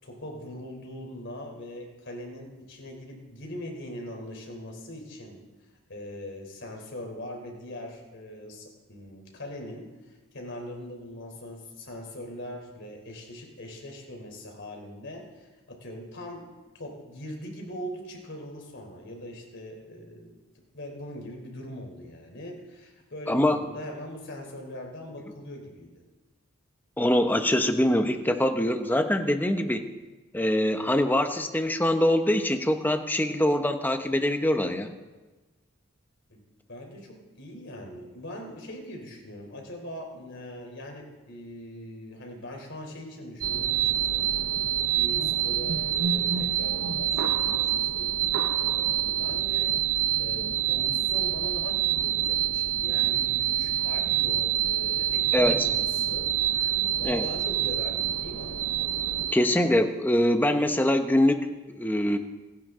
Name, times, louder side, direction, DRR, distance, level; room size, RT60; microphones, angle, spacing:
voice 1, 0.0-5.4 5.9-25.9 36.3-36.4 36.7-44.5 44.9-58.6, left 1 dB, 60° left, 2 dB, 3.5 m, -41 dB
voice 2, 23.3-23.6 27.0-29.9 30.3-34.9 55.3-55.7 57.0-57.3 59.3-62.2, left 1 dB, 10° left, 7 dB, 0.9 m, -24 dB
sound 1, 43.4-59.3, right 11 dB, 80° right, 0.8 m, -26 dB
29.0 x 10.5 x 3.7 m, 1.2 s
head